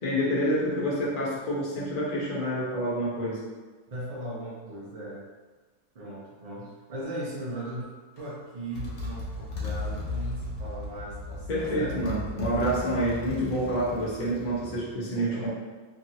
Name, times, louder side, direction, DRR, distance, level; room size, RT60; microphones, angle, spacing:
voice 1, 0.0-3.4 11.5-15.5, equal, 40° left, -7 dB, 0.9 m, -28 dB
voice 2, 3.9-5.3 5.9-7.9 8.2-12.0 15.3-15.5, right 1 dB, 50° right, -6 dB, 0.4 m, -38 dB
Motorcycle, 8.2-8.3 8.7-14.9, left 2 dB, 80° left, 1.2 m, -36 dB
3.1 x 2.6 x 2.8 m, 1.4 s
omnidirectional pair, 1.6 m